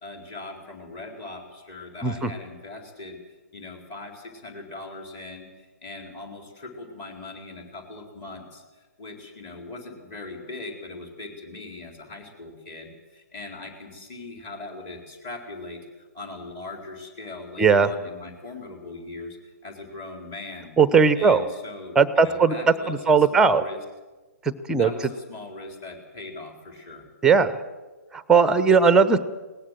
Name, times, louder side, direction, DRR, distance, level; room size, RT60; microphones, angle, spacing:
voice 1, 0.0-20.7 21.1-23.8 24.8-27.1, left 2 dB, 25° left, 3 dB, 4.2 m, -40 dB
voice 2, 17.6-17.9 20.8-21.4 22.0-22.5 22.9-23.6 24.4-24.9 27.2-27.5 28.1-29.2, right 5 dB, 5° right, 14 dB, 0.9 m, -18 dB
21.0 x 18.5 x 7.7 m, 1.2 s
figure-of-eight pair, 130°, 9 cm